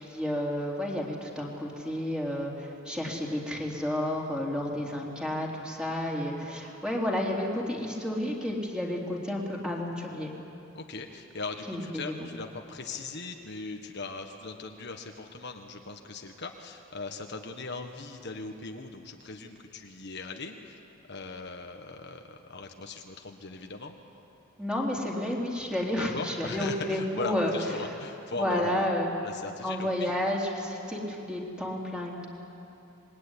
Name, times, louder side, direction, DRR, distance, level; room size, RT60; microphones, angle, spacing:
voice 1, 0.1-10.3 11.7-12.0 24.6-27.5 28.3-29.1 29.6-32.3, left 1 dB, 5° right, -2 dB, 3.6 m, -31 dB
voice 2, 10.7-20.8 21.1-24.0 25.9-28.9 29.2-30.1, left 3 dB, 55° left, 4 dB, 1.5 m, -39 dB
25.5 x 22.0 x 9.9 m, 2.9 s
head